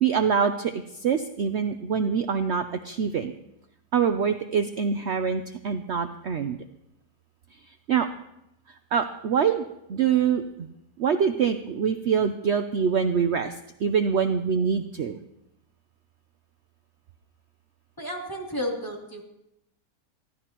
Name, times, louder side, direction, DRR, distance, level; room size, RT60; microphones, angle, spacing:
voice 1, 0.0-0.7 1.0-3.3 3.9-6.6 7.9-8.1 8.9-9.6 9.9-10.4 11.0-13.5 13.8-15.1, right 7 dB, 55° right, 8 dB, 0.9 m, -24 dB
voice 2, 18.0-19.2, equal, 15° left, -2 dB, 2.8 m, -32 dB
23.0 x 15.5 x 3.0 m, 0.82 s
omnidirectional pair, 1.5 m